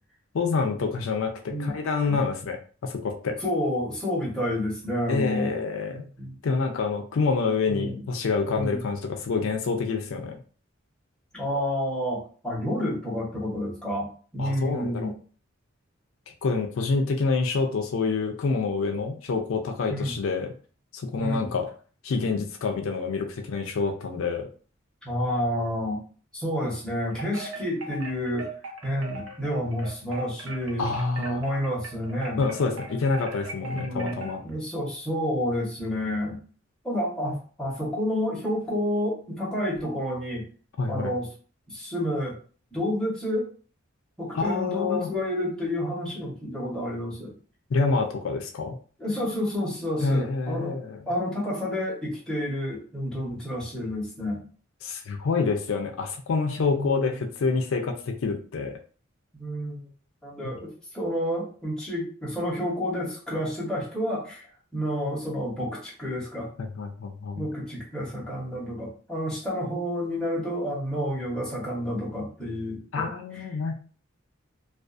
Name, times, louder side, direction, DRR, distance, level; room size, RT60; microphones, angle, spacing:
voice 1, 0.3-2.6 2.8-3.4 5.1-6.0 6.4-10.4 14.4-15.1 16.3-20.5 20.9-21.7 22.0-24.5 30.8-31.4 32.4-34.4 40.8-41.1 44.3-45.1 47.7-48.8 50.0-51.0 54.8-58.7 66.6-67.5 72.9-73.7, left 4 dB, 70° left, 3 dB, 0.4 m, -27 dB
voice 2, 3.4-5.6 5.9-6.4 7.7-8.0 8.5-8.8 11.3-15.1 19.9-20.2 21.2-21.5 25.0-26.0 26.3-28.5 28.8-30.9 31.2-32.4 33.6-36.4 36.8-40.5 40.9-41.3 41.7-42.4 42.7-43.5 44.2-47.3 49.0-50.8 51.1-54.4 56.6-57.1 59.3-59.9 60.2-64.4 64.7-66.5 67.3-73.1, equal, 5° left, -6 dB, 0.8 m, -29 dB
Wind chime, 27.1-34.5, right 2 dB, 65° right, 0.6 m, -39 dB
2.4 x 2.3 x 2.4 m, 0.40 s
head